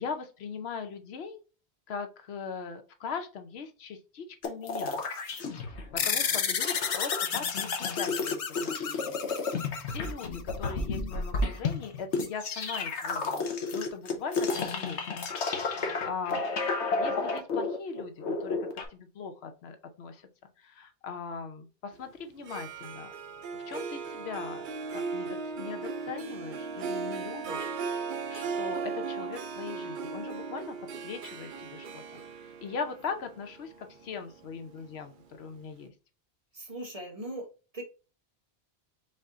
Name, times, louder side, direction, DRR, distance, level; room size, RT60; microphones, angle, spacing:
voice 1, 0.0-1.4 1.9-5.0 6.0-9.3 9.9-15.0 15.5-16.6 17.0-20.3 20.6-23.1 23.6-27.7 28.3-32.2 32.6-35.9, left 5 dB, 70° left, 0.9 m, -40 dB
sound 1, 4.4-6.1 6.4-18.9, left 3 dB, 85° left, 1.2 m, -32 dB
sound 2, 6.0-10.8, left 7 dB, 55° left, 0.4 m, -32 dB
voice 2, 15.8-16.1 36.5-37.5 37.7-37.8, right 1 dB, 35° right, 1.0 m, -41 dB
Harp, 22.3-35.2, right 5 dB, 60° right, 0.6 m, -37 dB
5.3 x 2.7 x 3.6 m
omnidirectional pair, 1.1 m